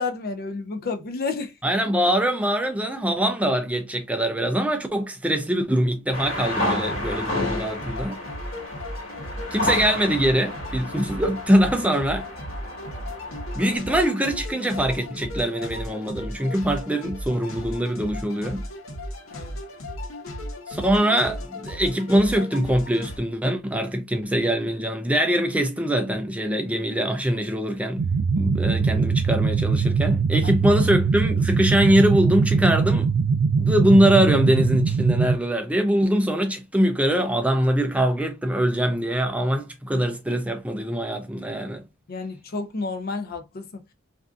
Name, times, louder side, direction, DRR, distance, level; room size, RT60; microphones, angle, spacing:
voice 1, 0.0-1.5 19.3-19.6 30.4-30.5 42.1-43.8, left 4 dB, 45° left, 0.5 m, -30 dB
voice 2, 1.6-8.2 9.5-12.3 13.6-18.6 20.7-28.1 28.4-33.1 33.6-41.8, equal, 5° right, 0.4 m, -23 dB
sound 1, 6.1-13.8, left 1 dB, 65° left, 1.3 m, -31 dB
sound 2, 6.8-23.2, left 1 dB, 80° left, 1.0 m, -36 dB
sound 3, 28.0-35.4, right 5 dB, 90° right, 0.4 m, -22 dB
3.5 x 2.5 x 2.4 m
head